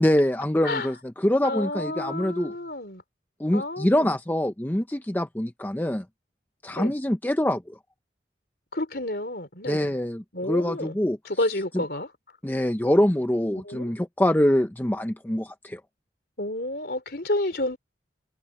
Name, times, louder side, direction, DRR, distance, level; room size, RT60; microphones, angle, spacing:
voice 1, 0.0-2.5 3.4-6.0 6.6-7.8 9.7-11.2 11.7-11.8 12.4-15.8, left 1 dB, 10° left, 0.6 m, -24 dB
voice 2, 1.4-3.0 3.5-4.2 6.8-6.9 8.7-9.9 10.3-11.0 11.2-12.1 13.6-13.9 16.4-17.8, left 1 dB, 55° left, 4.0 m, -30 dB
head